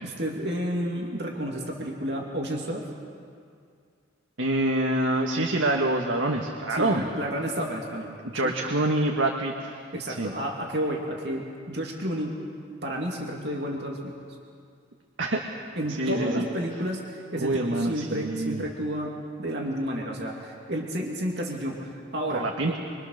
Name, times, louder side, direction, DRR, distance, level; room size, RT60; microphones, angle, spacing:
voice 1, 0.0-2.8 6.7-8.1 8.4-8.5 9.9-12.4 12.8-14.1 15.8-22.7, equal, 55° right, -1 dB, 2.7 m, -31 dB
voice 2, 4.4-7.1 8.2-9.8 10.1-10.3 15.2-15.5 15.9-16.5 17.3-18.7 22.3-22.8, right 1 dB, 80° right, 1 dB, 1.6 m, -26 dB
24.5 x 24.5 x 6.6 m, 2.3 s
head